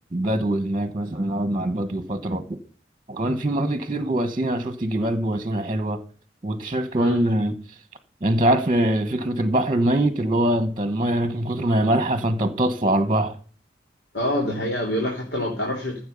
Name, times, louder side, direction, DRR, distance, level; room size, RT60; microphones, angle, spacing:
voice 1, 0.1-2.6 3.1-6.0 6.4-7.6 8.2-13.4, right 1 dB, 30° right, 1.2 m, -23 dB
voice 2, 14.1-16.0, left 1 dB, 75° left, 3.5 m, -26 dB
15.0 x 7.4 x 5.4 m
head